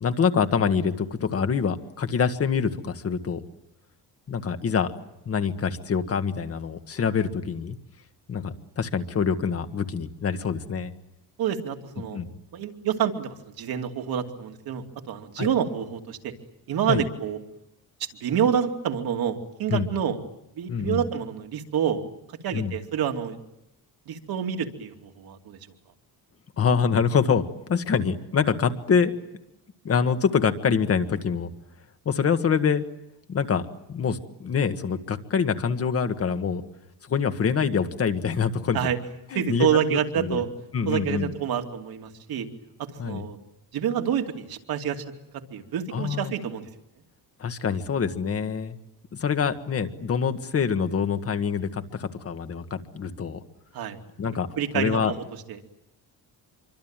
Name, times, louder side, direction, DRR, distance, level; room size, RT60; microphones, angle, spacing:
voice 1, 0.0-3.4 4.3-4.9 5.3-7.8 8.3-10.9 12.1-12.3 15.4-15.5 16.9-17.0 19.7-19.9 20.7-21.0 22.5-22.7 26.6-27.4 27.7-29.1 29.9-31.5 32.1-32.8 33.3-33.6 33.9-36.6 37.1-38.9 39.3-40.4 40.7-41.3 43.0-43.2 45.9-46.3 47.4-48.8 49.2-53.4 54.2-54.5 54.7-55.1, left 6 dB, 35° left, 9 dB, 1.7 m, -25 dB
voice 2, 11.4-12.2 12.5-16.3 16.7-17.4 18.2-20.2 20.5-22.0 22.4-23.4 24.1-25.6 38.7-39.0 39.3-40.5 40.9-42.5 43.0-43.4 43.7-45.0 45.5-46.7 53.7-54.0 54.6-55.1 55.5-55.6, right 8 dB, 65° right, 4 dB, 2.8 m, -27 dB
26.5 x 24.5 x 9.0 m, 0.85 s
cardioid pair, 160°, 40 cm